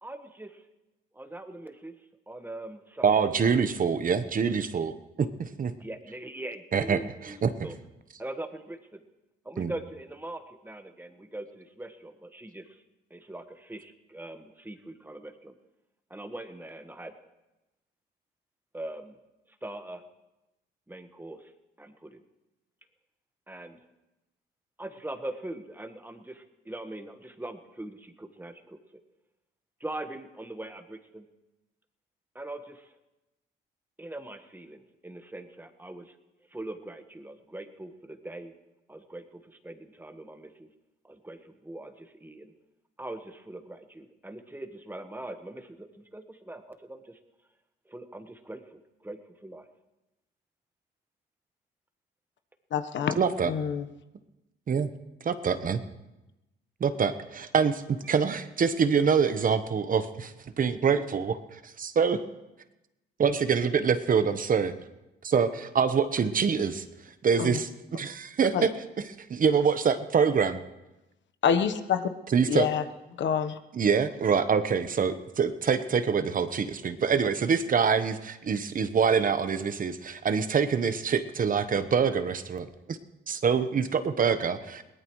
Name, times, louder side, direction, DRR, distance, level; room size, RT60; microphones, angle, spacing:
voice 1, 0.0-0.5 1.1-1.9 2.3-3.3 5.8-7.4 7.6-7.7 8.2-9.0 9.4-12.7 13.1-15.5 16.1-17.1 18.7-19.1 19.6-20.0 20.9-21.4 21.8-22.2 23.5-23.8 24.8-28.8 29.8-31.3 32.3-32.9 34.0-36.1 36.5-38.5 38.9-40.7 41.1-42.5 43.0-47.2 47.9-49.6, right 1 dB, 10° right, 7 dB, 1.4 m, -41 dB
voice 2, 3.0-5.7 6.7-7.5 9.6-9.7 53.2-53.5 54.7-54.9 55.2-55.8 56.8-62.2 63.2-64.7 65.2-66.8 67.2-70.6 72.3-72.7 73.7-83.0 83.3-84.8, right 6 dB, 45° right, 11 dB, 1.1 m, -25 dB
voice 3, 52.7-53.1 53.4-53.8 67.4-67.6 68.5-68.7 71.4-72.0 72.5-72.8 73.2-73.5, left 7 dB, 65° left, 10 dB, 1.1 m, -26 dB
22.0 x 18.5 x 3.2 m, 0.99 s
cardioid pair, 90°, 20 cm